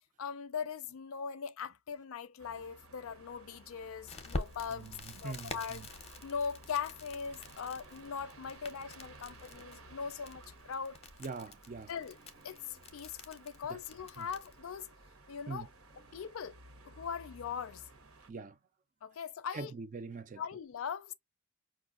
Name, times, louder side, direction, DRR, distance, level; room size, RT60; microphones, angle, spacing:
voice 1, 0.2-4.9 5.2-5.9 6.2-11.0 11.9-12.2 12.4-14.9 15.3-15.7 16.1-16.6 16.9-17.8 19.0-19.7 20.4-21.1, left 6 dB, 70° left, 0.4 m, -40 dB
sound 1, 2.4-18.3, right 2 dB, 75° right, 1.0 m, -56 dB
Crackle, 4.1-14.6, left 2 dB, 30° left, 0.6 m, -47 dB
voice 2, 5.2-5.9 11.2-11.9 13.7-13.8 14.2-14.3 15.5-15.7 18.3-18.6 19.5-20.4, right 4 dB, 35° right, 0.4 m, -43 dB
5.2 x 2.4 x 2.3 m
head